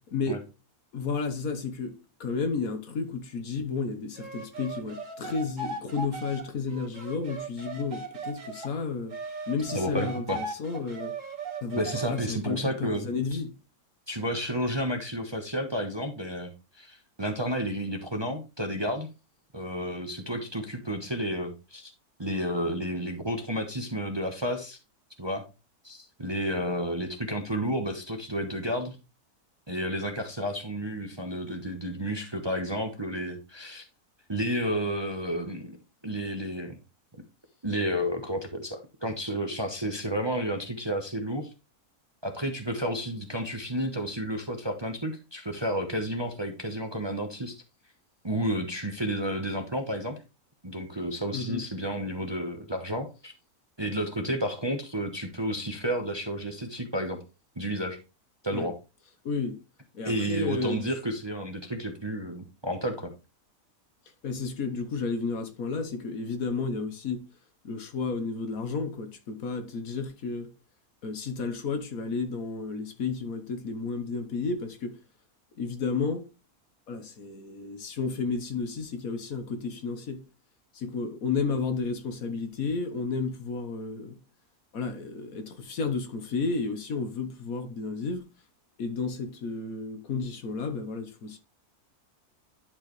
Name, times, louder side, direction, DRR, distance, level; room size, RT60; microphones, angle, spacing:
voice 1, 0.1-0.4 0.9-9.2 9.5-11.1 11.6-11.8 12.1-13.5 51.3-51.6 58.5-58.7 59.2-59.6 59.9-60.9 64.2-67.2 67.6-70.5 71.0-75.0 75.6-76.3 76.9-80.2 80.7-84.2 84.7-88.3 88.8-91.4, left 4 dB, 65° left, 1.5 m, -32 dB
sound 1, 4.2-8.7 9.1-12.3, right 3 dB, 55° right, 1.9 m, -38 dB
voice 2, 9.7-10.4 11.8-13.4 14.1-19.1 19.5-21.9 22.2-24.8 25.2-25.4 25.8-29.0 29.7-33.8 34.3-35.8 36.0-36.8 37.6-41.5 42.2-47.6 48.2-50.2 50.6-53.3 53.8-57.2 57.6-58.0 58.4-58.8 60.0-63.1, equal, 20° right, 0.9 m, -31 dB
11.0 x 4.8 x 3.1 m
omnidirectional pair, 1.6 m